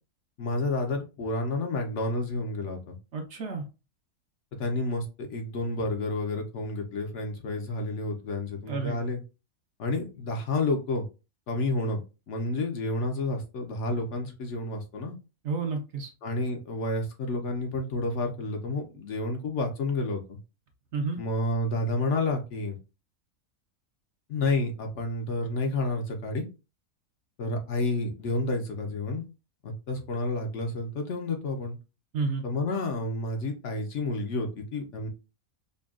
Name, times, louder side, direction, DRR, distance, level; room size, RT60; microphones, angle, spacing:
voice 1, 0.4-3.0 4.6-9.2 9.8-11.1 11.5-12.0 12.3-15.2 16.2-20.4 21.2-22.8 24.3-26.4 27.4-29.2 29.6-31.8 32.4-35.1, left 2 dB, 60° left, 3 dB, 1.0 m, -30 dB
voice 2, 3.1-3.6 8.7-9.0 15.4-16.1 20.9-21.2 32.1-32.4, right 4 dB, 60° right, 3 dB, 0.9 m, -30 dB
5.2 x 2.3 x 2.4 m, 0.30 s
omnidirectional pair, 1.5 m